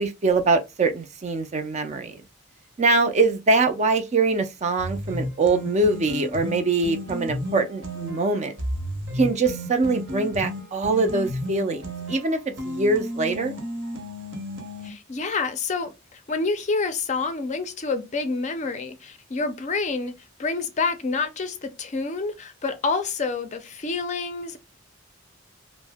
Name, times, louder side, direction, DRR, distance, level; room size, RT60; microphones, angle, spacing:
voice 1, 0.0-2.2 2.8-8.5 9.1-13.5, right 3 dB, 35° right, 0.4 m, -23 dB
sound 1, 4.8-14.9, equal, 65° right, 0.9 m, -33 dB
voice 2, 14.8-20.1 20.4-24.6, left 4 dB, 35° left, 0.4 m, -28 dB
2.7 x 2.0 x 3.4 m
head